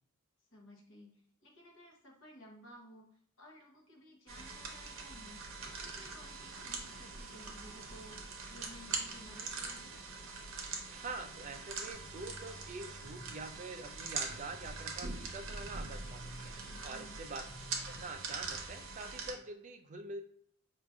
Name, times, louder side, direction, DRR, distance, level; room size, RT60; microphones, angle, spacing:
voice 1, 0.5-5.4 5.8-10.0 16.6-17.2, equal, 60° left, -1 dB, 0.9 m, -56 dB
sound 1, 4.3-19.3, right 4 dB, 60° right, 0.7 m, -43 dB
sound 2, 5.5-15.5, left 1 dB, 35° left, 1.3 m, -64 dB
voice 2, 10.9-16.6 16.8-20.2, right 3 dB, 35° right, 6 dB, 0.3 m, -45 dB
sound 3, 11.9-18.8, equal, 15° left, 0.7 m, -54 dB
4.7 x 2.4 x 2.4 m, 0.63 s
head